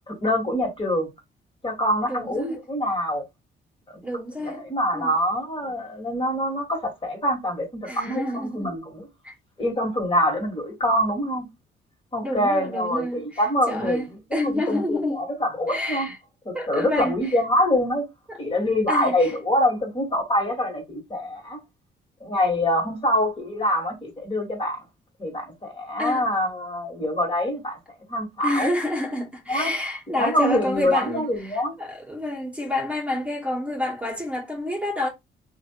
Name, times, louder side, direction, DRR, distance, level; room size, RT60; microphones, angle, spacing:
voice 1, 0.1-1.1 1.6-3.2 3.9-4.0 4.4-9.1 9.6-11.5 12.1-14.1 14.4-16.1 16.5-18.0 18.4-21.6 22.2-24.8 25.2-27.8 28.1-28.7 29.5-29.7 30.2-31.7, left 1 dB, 30° left, 1.8 m, -25 dB
voice 2, 2.0-2.6 4.0-4.6 4.9-5.1 7.8-8.8 9.2-9.3 12.2-15.2 15.7-16.2 16.5-17.4 18.3-18.4 18.9-19.3 26.0-26.3 28.4-35.1, left 1 dB, 5° right, 1.3 m, -29 dB
2.9 x 2.6 x 3.0 m
cardioid pair, 80°, 18 cm